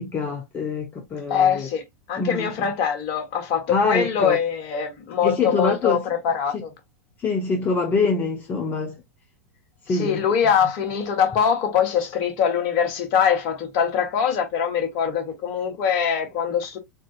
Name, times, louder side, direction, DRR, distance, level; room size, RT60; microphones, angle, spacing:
voice 1, 0.0-1.7 2.2-2.5 3.7-4.4 5.2-6.0 6.5-6.6 7.2-9.0 9.9-10.2, left 4 dB, 25° left, 0.8 m, -25 dB
voice 2, 1.3-1.8 2.1-6.7 9.9-16.8, left 7 dB, 45° left, 1.3 m, -23 dB
3.7 x 3.6 x 2.4 m
figure-of-eight pair, 90°, 8 cm